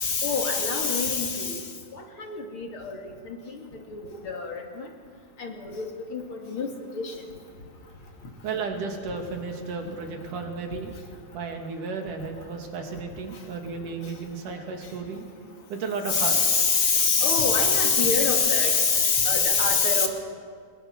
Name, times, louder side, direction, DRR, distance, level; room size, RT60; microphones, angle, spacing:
voice 1, 0.0-1.6 2.5-3.0 4.3-4.6 5.4-5.8 6.1-6.7 16.1-20.1, left 5 dB, 45° left, 2 dB, 3.1 m, -23 dB
voice 2, 8.4-10.9 11.3-15.3 15.7-16.5, right 4 dB, 80° right, 3 dB, 4.0 m, -33 dB
29.0 x 21.0 x 6.2 m, 2.1 s
omnidirectional pair, 3.6 m